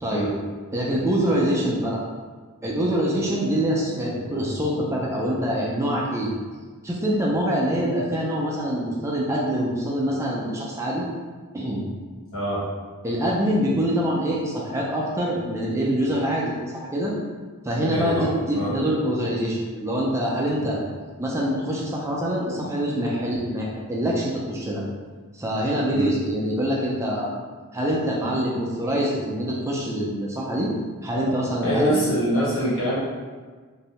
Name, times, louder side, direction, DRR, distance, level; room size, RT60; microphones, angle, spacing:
voice 1, 0.7-2.0 2.6-6.3 6.8-11.1 11.5-11.8 13.0-17.1 17.6-20.8 21.2-24.8 25.3-27.3 27.7-30.7 31.0-32.1, equal, 15° right, -4 dB, 0.3 m, -25 dB
voice 2, 12.3-12.7 17.9-18.7 20.6-20.7 25.9-26.1 31.6-32.9, equal, 65° left, -8 dB, 1.0 m, -24 dB
2.6 x 2.0 x 2.9 m, 1.4 s
head